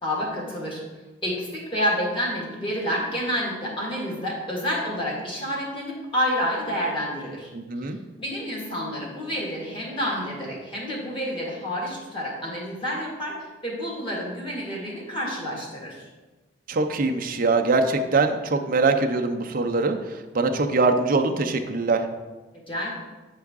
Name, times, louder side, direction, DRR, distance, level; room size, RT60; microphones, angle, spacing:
voice 1, 0.0-0.8 1.2-7.5 8.2-13.4 13.6-16.1 22.7-22.9, equal, 30° left, -3 dB, 1.8 m, -29 dB
voice 2, 7.5-8.0 16.7-20.0 20.3-22.0, right 3 dB, 50° right, 5 dB, 0.5 m, -22 dB
8.3 x 4.7 x 3.5 m, 1.2 s
head